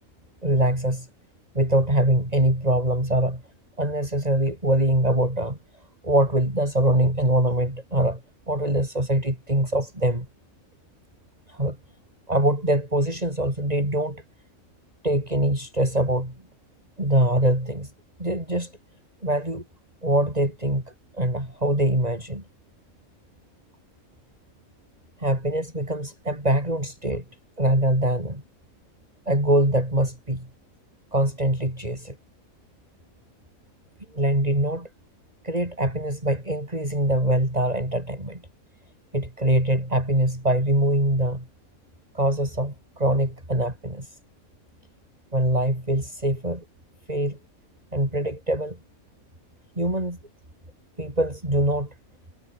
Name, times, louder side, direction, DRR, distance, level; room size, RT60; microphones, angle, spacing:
voice 1, 0.4-1.1 1.5-3.4 3.8-5.6 6.0-8.2 8.5-10.3 11.5-11.8 12.3-14.2 15.0-16.4 17.0-17.9 18.2-18.8 19.2-19.6 20.0-22.4 25.2-27.2 27.6-28.4 29.2-30.5 31.1-32.2 34.1-34.9 35.4-38.4 39.1-41.5 42.1-44.2 45.3-46.6 47.1-47.4 47.9-48.8 49.8-50.2 51.0-51.9, right 1 dB, 25° right, 6.9 m, -23 dB
omnidirectional pair, 1.5 m